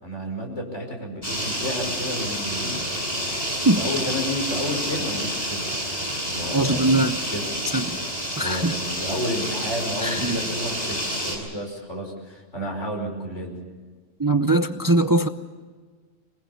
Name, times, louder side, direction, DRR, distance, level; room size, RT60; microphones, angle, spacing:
voice 1, 0.0-2.8 3.8-5.8 6.3-6.8 7.2-7.4 8.4-13.6, equal, 85° left, 1 dB, 5.9 m, -31 dB
sound 1, 1.2-11.4, equal, 35° left, 7.4 m, -29 dB
voice 2, 6.5-7.2 7.7-8.0 8.4-8.8 10.0-10.4 14.2-15.3, right 2 dB, 20° right, 9 dB, 0.6 m, -21 dB
24.5 x 20.5 x 7.1 m, 1.5 s
omnidirectional pair, 1.2 m